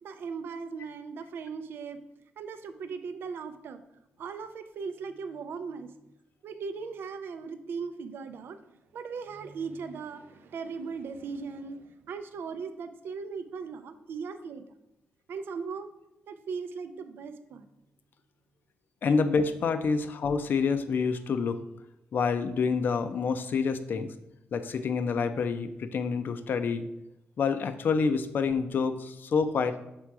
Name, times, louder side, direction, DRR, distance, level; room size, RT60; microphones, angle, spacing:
voice 1, 0.0-2.0 2.4-3.8 4.2-5.9 6.4-8.6 8.9-14.6 15.3-15.9 16.3-17.7, right 5 dB, 70° right, 9 dB, 0.5 m, -38 dB
voice 2, 19.0-21.6 22.1-24.1 24.5-26.8 27.4-29.8, left 5 dB, 60° left, 10 dB, 0.5 m, -27 dB
6.1 x 3.6 x 4.6 m, 0.87 s
cardioid pair, 105°, 4 cm